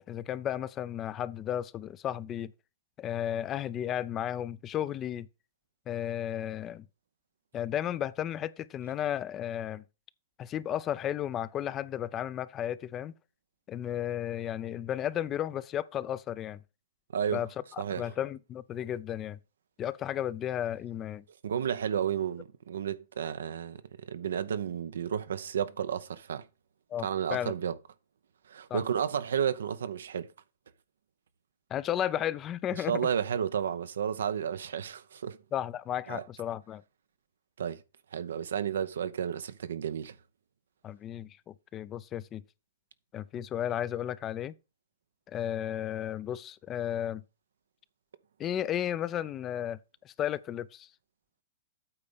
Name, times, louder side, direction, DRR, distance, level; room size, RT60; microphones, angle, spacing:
voice 1, 0.1-2.5 3.0-5.3 5.9-6.9 7.5-9.8 10.4-13.1 13.7-16.6 17.3-19.4 19.8-21.2 26.9-27.5 28.7-28.8 31.7-33.1 35.5-36.8 40.8-42.4 43.1-44.5 45.3-47.2 48.4-49.8 50.0-50.9, left 10 dB, 30° left, 0.5 m, -34 dB
voice 2, 17.1-17.5 17.8-18.1 21.4-26.5 27.0-27.8 28.5-30.3 32.8-35.4 36.1-36.2 37.6-37.8 38.1-40.2, right 8 dB, 75° right, 0.7 m, -32 dB
8.7 x 3.9 x 6.8 m
hypercardioid pair, 120°, 0 cm